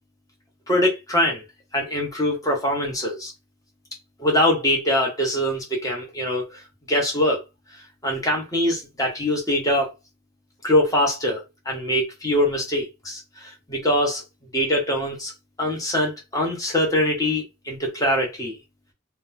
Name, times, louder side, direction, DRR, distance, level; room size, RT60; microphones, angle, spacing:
voice 1, 0.7-1.4 1.7-3.3 4.2-6.6 6.9-7.4 8.0-9.9 10.6-14.2 14.5-15.3 15.6-18.6, left 1 dB, 15° left, 1.3 m, -23 dB
3.3 x 2.3 x 4.2 m
head